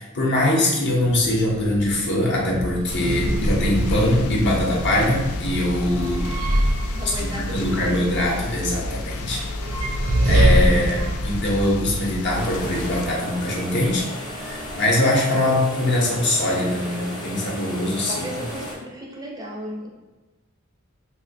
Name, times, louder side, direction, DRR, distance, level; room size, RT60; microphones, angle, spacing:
voice 1, 0.0-6.3 7.2-9.4 10.2-14.1 14.4-18.1, left 1 dB, 55° left, -2 dB, 0.8 m, -22 dB
sound 1, 1.0-13.1, right 1 dB, 70° right, 0.5 m, -25 dB
sound 2, 2.9-13.1, left 3 dB, 90° left, 0.3 m, -33 dB
voice 2, 6.9-7.9 18.1-19.9, equal, 20° right, -2 dB, 0.5 m, -35 dB
sound 3, 12.3-18.7, left 1 dB, 20° left, 0.7 m, -34 dB
2.9 x 2.1 x 4.1 m, 1.2 s
head